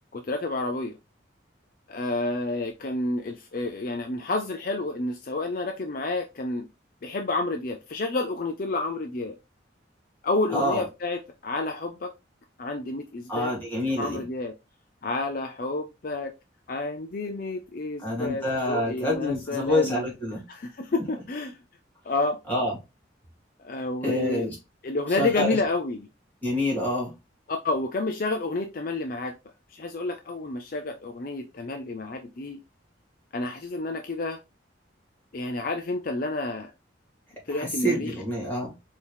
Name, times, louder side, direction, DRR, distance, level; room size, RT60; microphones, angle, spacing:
voice 1, 0.1-0.9 1.9-6.7 7.0-9.4 10.2-12.1 12.6-13.5 14.0-14.5 15.0-16.3 16.7-20.1 20.5-21.6 22.0-22.4 23.6-24.5 24.8-26.1 27.5-29.3 29.7-32.6 33.3-34.4 35.3-36.7 37.5-38.1, left 2 dB, 45° left, 0.5 m, -30 dB
voice 2, 10.5-10.8 13.3-14.2 18.0-20.4 22.5-22.8 24.0-24.6 25.2-25.6 26.4-27.1 37.5-38.7, left 1 dB, 10° left, 2.2 m, -27 dB
4.5 x 2.9 x 3.4 m
head